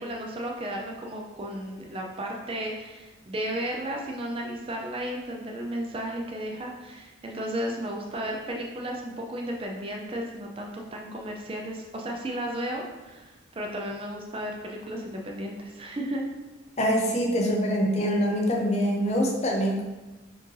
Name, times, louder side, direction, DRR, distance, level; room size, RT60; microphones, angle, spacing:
voice 1, 0.0-16.2, right 1 dB, 25° right, 0 dB, 0.4 m, -34 dB
voice 2, 16.8-19.8, equal, 30° left, 0 dB, 0.5 m, -24 dB
4.4 x 2.5 x 3.2 m, 1.1 s
head